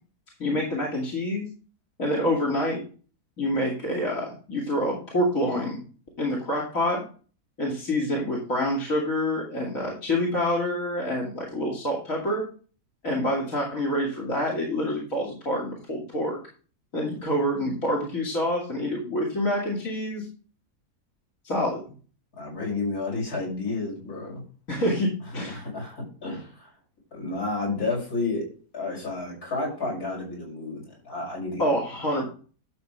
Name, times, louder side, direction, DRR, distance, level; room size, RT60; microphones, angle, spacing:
voice 1, 0.4-1.5 2.0-2.8 3.4-5.8 6.2-7.0 7.6-12.4 13.0-16.4 16.9-20.3 21.4-21.8 24.7-25.6 31.6-32.2, left 1 dB, 60° left, -1 dB, 3.0 m, -27 dB
voice 2, 22.4-24.4 25.3-26.7 27.1-28.4 28.7-31.6, left 3 dB, 75° left, -3 dB, 6.9 m, -31 dB
12.0 x 7.3 x 3.4 m, 0.38 s
omnidirectional pair, 1.6 m